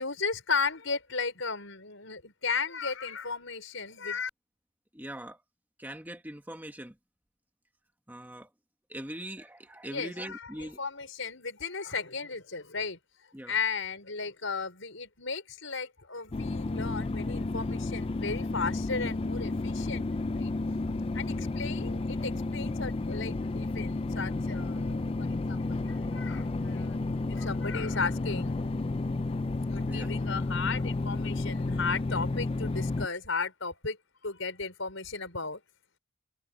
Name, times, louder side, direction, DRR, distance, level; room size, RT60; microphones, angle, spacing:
voice 1, 0.0-4.3 9.8-10.1 10.6-13.0 13.5-20.1 20.4-20.5 21.1-27.0 27.3-28.6 29.7-34.0 34.2-35.6, left 4 dB, 70° left, 5.3 m, -35 dB
voice 2, 4.9-5.4 5.8-6.9 8.1-8.5 8.9-10.8 13.3-13.6 29.9-30.1, right 1 dB, 10° right, 1.6 m, -41 dB
sound 1, 16.3-33.1, left 2 dB, 25° left, 0.4 m, -32 dB
head